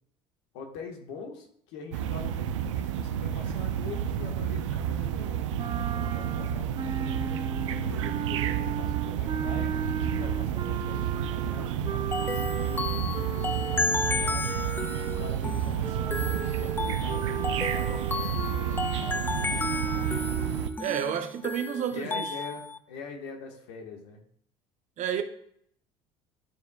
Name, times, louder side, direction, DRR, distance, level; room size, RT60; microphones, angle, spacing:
voice 1, 0.5-5.5 5.7-9.8 10.1-14.5 15.0-20.1 21.9-24.2, left 4 dB, 75° left, 1.4 m, -44 dB
sound 1, 1.9-20.7, right 9 dB, 90° right, 0.5 m, -30 dB
sound 2, 5.6-15.4 15.8-21.0, right 7 dB, 30° right, 0.6 m, -36 dB
sound 3, 12.1-22.8, left 3 dB, 15° left, 0.4 m, -33 dB
voice 2, 20.8-22.3 25.0-25.2, right 9 dB, 55° right, 0.9 m, -30 dB
12.0 x 4.7 x 2.3 m
hypercardioid pair, 75°, 15 cm